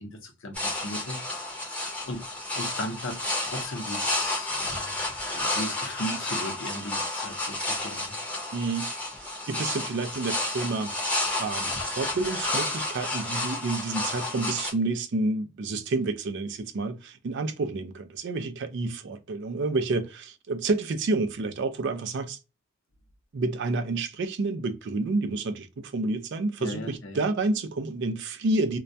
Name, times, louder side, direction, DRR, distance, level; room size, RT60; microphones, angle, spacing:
voice 1, 0.0-2.2 2.5-5.0 5.3-8.2 26.6-27.2, left 1 dB, 65° left, 0.7 m, -37 dB
sound 1, 0.5-14.7, left 2 dB, 5° left, 0.7 m, -31 dB
voice 2, 8.5-8.9 9.5-10.9 11.4-22.4 23.3-28.8, right 3 dB, 55° right, 0.4 m, -29 dB
2.2 x 2.1 x 2.6 m
head